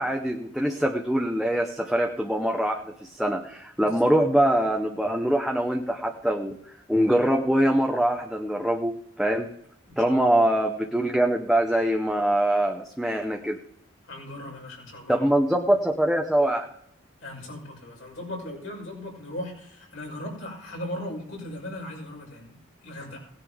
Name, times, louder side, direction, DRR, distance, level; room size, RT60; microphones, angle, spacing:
voice 1, 0.0-9.5 10.0-13.6 15.1-16.7, right 1 dB, ahead, 1 dB, 0.8 m, -24 dB
voice 2, 9.9-10.3 14.0-15.3 17.2-22.6 22.8-23.3, left 1 dB, 75° left, -2 dB, 6.1 m, -38 dB
18.5 x 10.5 x 3.6 m, 0.74 s
head